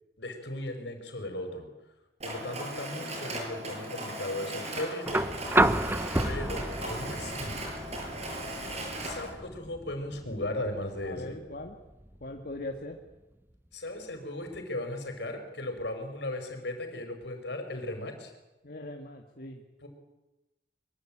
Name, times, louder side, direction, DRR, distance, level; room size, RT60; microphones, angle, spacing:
voice 1, 0.2-1.7 2.2-5.2 6.2-7.6 9.0-11.4 13.7-18.3 19.8-19.9, left 1 dB, 70° left, 5 dB, 5.5 m, -37 dB
Mechanisms, 2.2-9.3, right 1 dB, 40° right, 7.6 m, -37 dB
sound 1, 5.1-13.1 14.5-14.6, right 1 dB, 10° right, 0.9 m, -31 dB
voice 2, 11.0-11.8 12.2-13.0 18.6-19.6, left 2 dB, 55° left, 2 dB, 2.1 m, -40 dB
24.5 x 24.0 x 8.9 m, 1.0 s
head